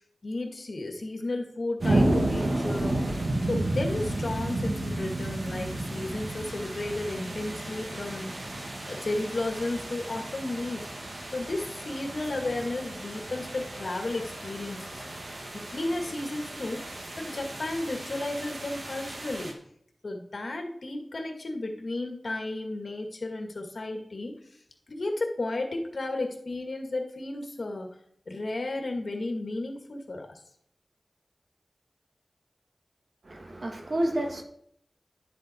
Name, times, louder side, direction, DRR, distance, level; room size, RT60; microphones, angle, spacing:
voice 1, 0.2-3.0 3.5-10.9 11.3-15.0 15.7-16.8 17.2-19.6 20.0-24.4 24.9-27.9 28.3-30.3, left 2 dB, 75° left, 3 dB, 1.9 m, -33 dB
sound 1, 1.8-19.5, right 1 dB, 85° right, 2.0 m, -32 dB
voice 2, 33.2-34.4, right 1 dB, 65° right, 3 dB, 1.8 m, -30 dB
11.5 x 7.7 x 4.4 m, 0.68 s
wide cardioid pair, 65°, 0 cm